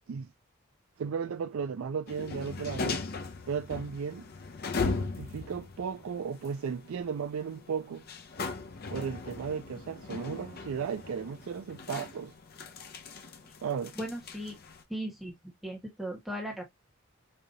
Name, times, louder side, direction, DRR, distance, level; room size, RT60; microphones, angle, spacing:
voice 1, 1.0-3.0 3.5-4.2 4.8-8.1 8.9-12.3 13.6-13.9, right 6 dB, 80° right, 0.4 m, -35 dB
sound 1, 2.1-14.8, left 4 dB, 45° left, 0.5 m, -39 dB
voice 2, 14.0-14.5 14.9-15.3 15.6-16.6, right 1 dB, ahead, 1.2 m, -37 dB
5.3 x 2.8 x 2.5 m
head